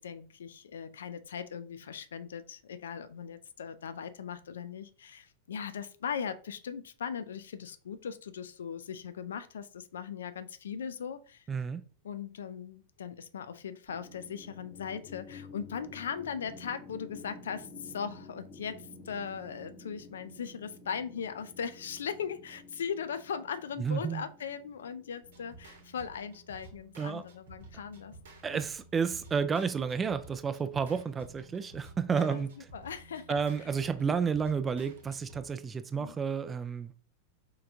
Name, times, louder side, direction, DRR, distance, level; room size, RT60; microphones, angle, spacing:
voice 1, 0.0-11.4 12.0-28.1 32.2-32.4 32.7-33.7 36.0-36.1, left 7 dB, 65° left, 0.4 m, -39 dB
voice 2, 11.5-11.8 23.8-24.3 27.0-27.2 28.4-32.5 33.3-37.0, right 6 dB, 20° right, 0.3 m, -31 dB
sound 1, 13.9-26.0, left 3 dB, 20° left, 0.7 m, -51 dB
sound 2, 25.2-35.7, right 2 dB, 60° right, 0.9 m, -53 dB
4.6 x 3.3 x 2.7 m
figure-of-eight pair, 90°, 0 cm